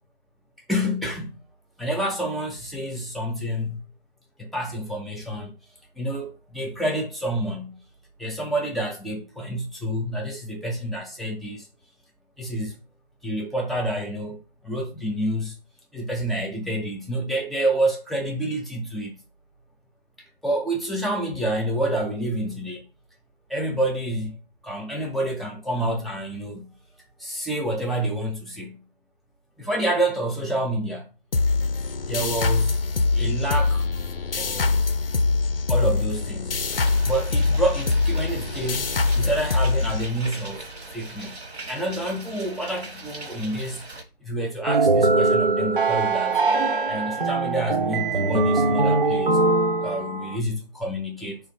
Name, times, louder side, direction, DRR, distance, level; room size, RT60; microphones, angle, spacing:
voice 1, 0.7-1.4 1.8-3.8 4.4-5.5 6.0-7.8 8.2-11.7 12.4-12.7 13.2-15.6 15.9-19.2 20.4-22.8 23.5-24.4 24.6-26.7 27.2-28.8 29.6-31.1 32.1-32.8 33.1-33.8 34.4-34.8 35.7-36.6 37.1-40.6 40.9-41.4 41.7-43.8 44.2-46.4 46.9-49.4 49.8-51.4, right 1 dB, ahead, 0.4 m, -28 dB
sound 1, 31.3-40.5, left 3 dB, 60° left, 0.4 m, -23 dB
sound 2, 36.7-44.0, right 2 dB, 85° right, 1.0 m, -40 dB
sound 3, 44.7-50.4, right 3 dB, 55° right, 0.5 m, -21 dB
3.5 x 2.3 x 3.2 m
figure-of-eight pair, 170°, 32 cm